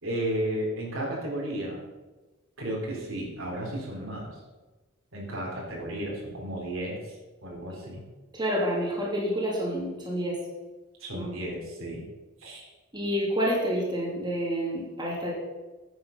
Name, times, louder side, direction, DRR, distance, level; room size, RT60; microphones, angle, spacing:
voice 1, 0.0-1.8 2.6-4.4 5.1-7.2 7.4-8.0 11.0-12.1 12.4-12.6, right 1 dB, 70° right, -2 dB, 3.6 m, -33 dB
voice 2, 8.3-10.4 11.1-11.3 12.9-15.3, equal, 20° right, -5 dB, 3.0 m, -28 dB
9.7 x 8.5 x 5.8 m, 1.2 s
head